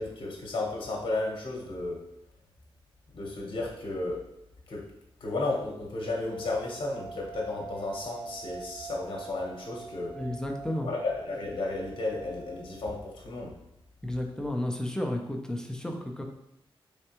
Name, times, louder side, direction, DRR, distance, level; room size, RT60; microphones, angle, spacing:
voice 1, 0.0-2.0 3.1-4.2 4.7-4.8 5.2-10.1 10.8-13.5, left 2 dB, 55° left, -2 dB, 0.9 m, -33 dB
sound 1, 6.2-13.3, right 6 dB, 70° right, 1.0 m, -45 dB
voice 2, 10.2-10.9 14.0-16.2, left 1 dB, 5° left, 1 dB, 0.4 m, -32 dB
4.3 x 3.3 x 2.9 m, 0.80 s
wide cardioid pair, 160°, 10 cm